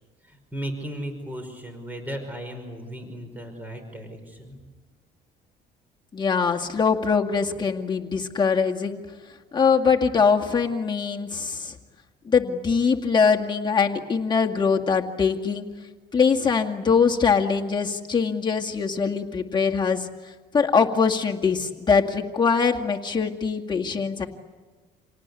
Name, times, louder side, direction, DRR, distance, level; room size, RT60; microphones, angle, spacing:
voice 1, 0.3-4.6, right 1 dB, 10° right, 5 dB, 5.3 m, -36 dB
voice 2, 6.1-9.0 9.5-11.7 12.3-15.7 16.1-20.1 20.5-24.3, left 5 dB, 25° left, 1 dB, 2.2 m, -22 dB
28.0 x 18.5 x 9.9 m, 1.3 s
cardioid pair, 110°, 17 cm